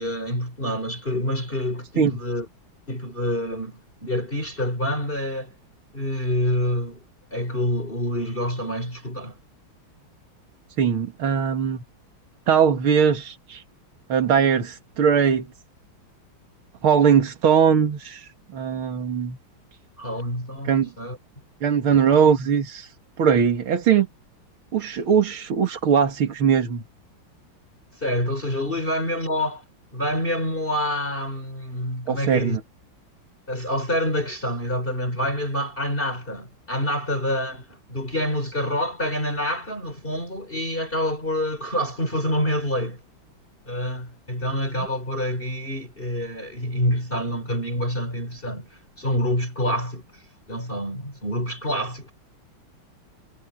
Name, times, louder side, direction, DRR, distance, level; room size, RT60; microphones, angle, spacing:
voice 1, 0.0-2.5 2.9-5.5 5.9-7.0 7.3-9.4 20.0-21.2 27.9-29.6 29.9-32.6 33.5-43.0 43.7-50.2 50.5-52.1, left 1 dB, 25° left, 5.4 m, -27 dB
voice 2, 10.8-11.8 12.5-13.6 14.1-15.5 16.8-19.4 20.7-20.9 21.6-24.1 24.7-26.8 32.1-32.6, right 7 dB, 85° right, 2.9 m, -20 dB
omnidirectional pair, 2.2 m